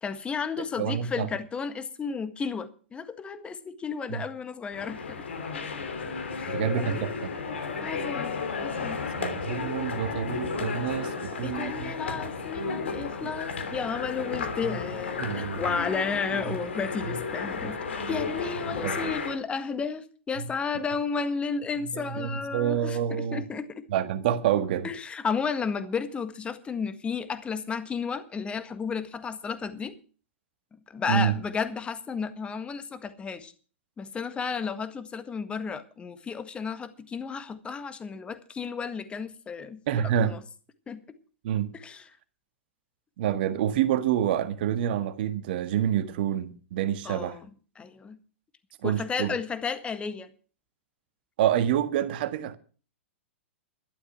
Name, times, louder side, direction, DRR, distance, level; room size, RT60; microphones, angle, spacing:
voice 1, 0.0-5.3 6.3-7.0 7.6-8.4 8.6-9.1 11.4-23.9 24.8-29.9 30.9-33.5 34.0-40.4 40.9-41.0 41.7-42.1 47.0-47.5 47.8-48.2 48.8-50.3, left 5 dB, 15° left, 1.7 m, -33 dB
voice 2, 0.8-1.3 4.1-4.2 6.5-7.3 9.2-12.2 13.2-13.3 14.6-14.8 15.2-15.6 16.5-16.6 17.0-17.2 18.0-18.1 18.8-19.1 20.4-20.5 21.9-23.4 23.9-24.9 31.1-31.3 39.9-40.3 41.4-41.7 43.2-47.4 48.8-49.3 51.4-52.6, right 10 dB, 50° right, 1.6 m, -28 dB
sound 1, 4.7-19.4, left 5 dB, 70° left, 3.3 m, -33 dB
12.5 x 11.5 x 6.0 m
figure-of-eight pair, 105°, 7 cm